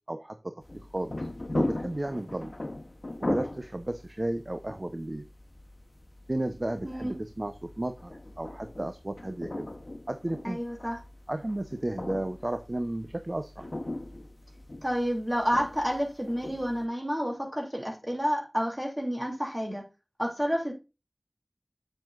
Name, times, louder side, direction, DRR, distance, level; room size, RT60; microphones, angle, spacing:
voice 1, 0.1-0.5 0.9-1.3 1.5-2.5 3.2-5.2 6.3-8.1 8.4-9.7 10.1-10.6 11.3-13.7, right 1 dB, 45° right, 0.8 m, -33 dB
sound 1, 0.6-16.9, left 1 dB, 60° left, 1.1 m, -39 dB
voice 2, 10.4-11.0 14.8-19.8 20.2-20.7, equal, 20° right, 3.0 m, -30 dB
7.7 x 7.4 x 2.5 m
wide cardioid pair, 40°, 0 cm